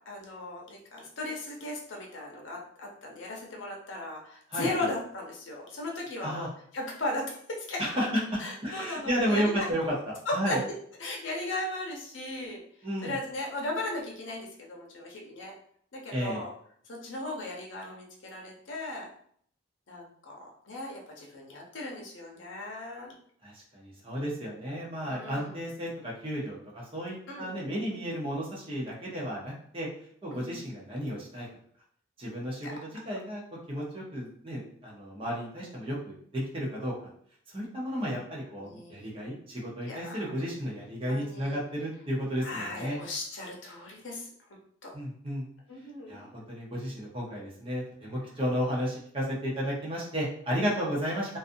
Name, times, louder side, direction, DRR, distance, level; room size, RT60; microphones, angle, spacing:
voice 1, 0.1-8.0 8.4-9.9 10.3-10.6 11.0-12.6 13.0-15.5 15.9-16.5 16.9-19.1 19.9-23.1 25.0-25.6 27.3-27.5 30.3-30.5 32.6-32.7 38.6-38.9 39.8-40.3 41.1-41.6 42.4-44.3 44.8-44.9 45.7-46.2, left 2 dB, 70° left, -1 dB, 0.7 m, -37 dB
voice 2, 4.5-4.9 6.2-6.5 7.8-8.2 8.6-9.9 10.3-10.6 12.8-13.2 16.1-16.4 23.4-29.9 30.2-31.5 32.2-33.4 33.7-36.9 37.5-43.0 44.9-45.5 46.1-51.4, equal, 30° right, -4 dB, 0.7 m, -33 dB
2.5 x 2.3 x 2.6 m, 0.62 s
head